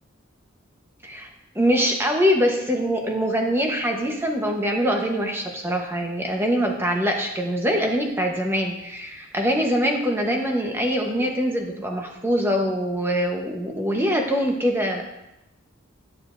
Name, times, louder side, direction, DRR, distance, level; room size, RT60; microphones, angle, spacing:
voice 1, 1.5-15.0, equal, 10° right, 1 dB, 1.0 m, -23 dB
11.5 x 6.7 x 2.6 m, 0.92 s
head